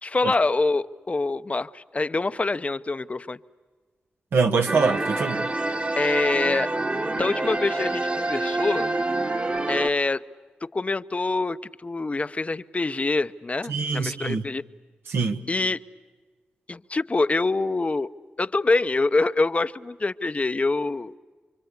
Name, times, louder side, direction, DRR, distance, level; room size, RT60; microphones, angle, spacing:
voice 1, 0.0-3.4 6.0-6.7 7.1-8.9 9.7-10.2 10.6-14.6 15.5-15.8 16.7-18.1 18.4-21.1, left 3 dB, 35° left, 13 dB, 0.8 m, -25 dB
voice 2, 4.3-5.5 13.7-14.5 15.1-15.4, right 4 dB, 75° right, 4 dB, 1.5 m, -24 dB
sound 1, 4.7-9.9, right 2 dB, 35° right, 1.8 m, -27 dB
28.0 x 25.0 x 8.3 m, 1.4 s
supercardioid pair, 45°, 4 cm